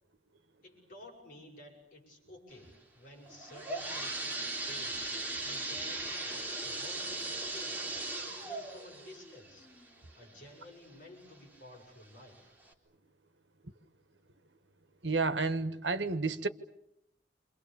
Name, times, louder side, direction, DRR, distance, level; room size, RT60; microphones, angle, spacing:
voice 1, 0.6-5.0 5.4-7.8 8.3-9.7 10.1-12.5, left 1 dB, 50° left, 7.9 m, -53 dB
sound 1, 3.3-10.9 11.4-11.5 12.2-12.3 12.7-12.8, right 2 dB, 10° right, 3.7 m, -38 dB
voice 2, 15.0-16.5, right 3 dB, 85° right, 1.5 m, -31 dB
29.0 x 27.0 x 7.2 m
head